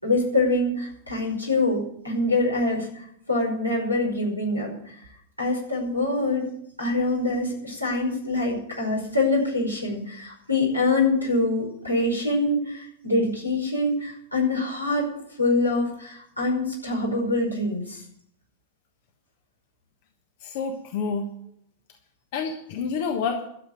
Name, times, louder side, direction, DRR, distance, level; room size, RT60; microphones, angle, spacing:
voice 1, 0.0-4.9 5.4-6.5 6.8-15.1 15.4-18.0, left 2 dB, 90° left, -3 dB, 5.4 m, -25 dB
voice 2, 20.4-21.3 22.3-23.4, left 5 dB, 50° left, 4 dB, 1.3 m, -28 dB
12.5 x 7.5 x 9.1 m, 0.70 s
figure-of-eight pair, 90°, 0 cm